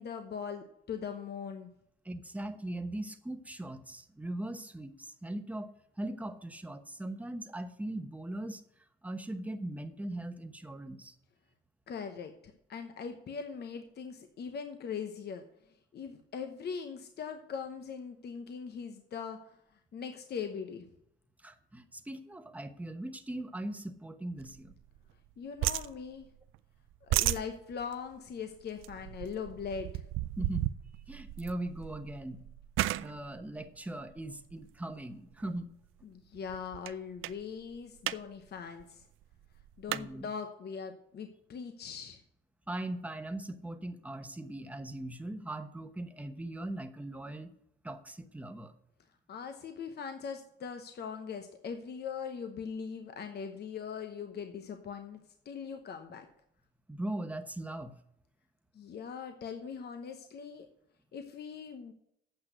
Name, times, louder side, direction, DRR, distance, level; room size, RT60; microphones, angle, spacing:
voice 1, 0.0-1.7 11.9-19.6 19.9-20.8 25.4-26.3 27.0-30.0 36.0-39.0 39.8-42.2 49.3-55.2 55.4-56.3 58.7-60.7 61.1-61.9, left 6 dB, 55° left, 6 dB, 1.0 m, -41 dB
voice 2, 2.0-5.7 6.0-8.6 9.0-11.1 21.4-24.7 30.4-30.7 31.1-32.4 32.9-35.7 39.9-40.3 42.7-47.5 47.8-48.7 56.9-57.9, right 1 dB, 5° right, 8 dB, 1.0 m, -40 dB
sound 1, 24.4-25.3 25.6-26.6 26.9-34.7 35.3-35.6 36.0-36.1 36.3-36.9 37.2-37.4 37.7-38.2 38.5-38.6 38.8-40.0, right 15 dB, 90° right, 0.4 m, -35 dB
8.6 x 6.1 x 7.9 m, 0.75 s
cardioid pair, 90°, 20 cm